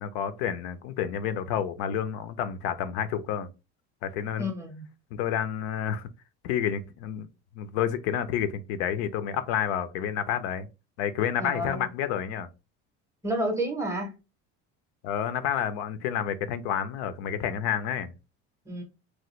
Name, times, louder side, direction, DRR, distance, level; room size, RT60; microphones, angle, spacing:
voice 1, 0.0-3.5 4.0-4.5 5.1-6.1 6.4-7.3 7.5-10.7 11.0-12.5 15.0-18.1, left 9 dB, 85° left, 0.6 m, -29 dB
voice 2, 4.4-4.8 11.4-11.9 13.2-14.2 18.7-18.8, equal, 10° right, 0.6 m, -30 dB
3.0 x 2.3 x 3.0 m
cardioid pair, 165°, 31 cm